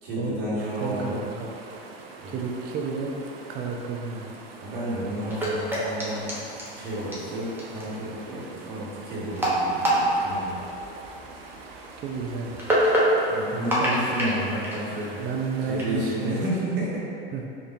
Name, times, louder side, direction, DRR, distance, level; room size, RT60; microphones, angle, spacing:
voice 1, 0.0-1.1 2.2-2.4 4.6-6.3 6.7-10.6 13.3-15.2 15.7-17.0, right 1 dB, 70° right, -8 dB, 1.5 m, -31 dB
sound 1, 0.6-16.5, right 3 dB, 85° right, 0.5 m, -45 dB
voice 2, 0.8-1.5 2.3-3.1 3.5-4.4 12.0-12.7 13.5-14.0 15.2-16.4 17.3-17.4, right 4 dB, 30° right, 1 dB, 0.5 m, -31 dB
sound 2, 5.2-15.8, right 1 dB, 5° right, 0.8 m, -28 dB
5.0 x 2.6 x 2.6 m, 2.7 s
hypercardioid pair, 100°, 29 cm